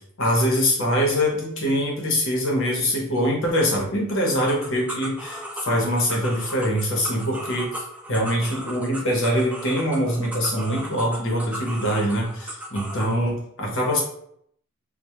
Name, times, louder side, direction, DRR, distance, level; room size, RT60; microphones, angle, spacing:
voice 1, 0.2-7.7 8.1-14.0, equal, 60° left, -1 dB, 0.8 m, -23 dB
sound 1, 4.5-13.1, right 1 dB, 5° right, 0.3 m, -36 dB
2.2 x 2.0 x 2.9 m, 0.68 s
head